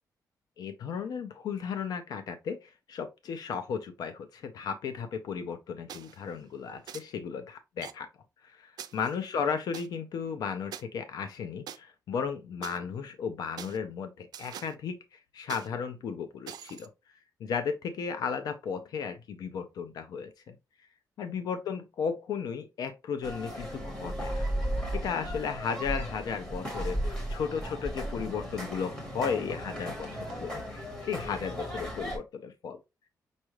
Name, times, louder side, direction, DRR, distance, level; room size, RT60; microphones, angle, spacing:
voice 1, 0.6-8.1 8.4-16.9 17.4-20.6 21.2-24.5 25.0-30.1 30.4-32.8, left 6 dB, 70° left, 0.5 m, -35 dB
sound 1, 5.9-6.2 6.9-7.0 7.8-7.9 8.8-9.9 10.7-10.8 11.7-11.8 12.6-12.8 13.6-13.8 14.3-14.7 15.5-15.7 16.5-16.9, right 9 dB, 75° right, 0.4 m, -43 dB
sound 2, 23.2-32.2, equal, 10° left, 1.4 m, -35 dB
5.3 x 2.3 x 3.1 m
wide cardioid pair, 170°, 7 cm